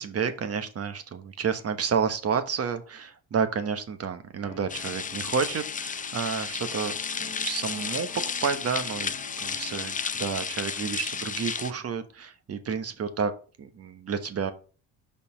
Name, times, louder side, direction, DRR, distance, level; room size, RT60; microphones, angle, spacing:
voice 1, 0.0-6.9 7.2-9.1 9.4-13.3 13.6-14.5, right 6 dB, 45° right, 8 dB, 1.2 m, -30 dB
Guitar, 4.4-11.0, left 8 dB, 70° left, 0.8 m, -48 dB
sound 1, 4.7-11.7, left 6 dB, 25° left, 0.5 m, -33 dB
Wind instrument woodwind instrument, 5.3-9.7, right 8 dB, 75° right, 3.1 m, -59 dB
5.3 x 4.6 x 5.1 m, 0.37 s
supercardioid pair, 70°, 35 cm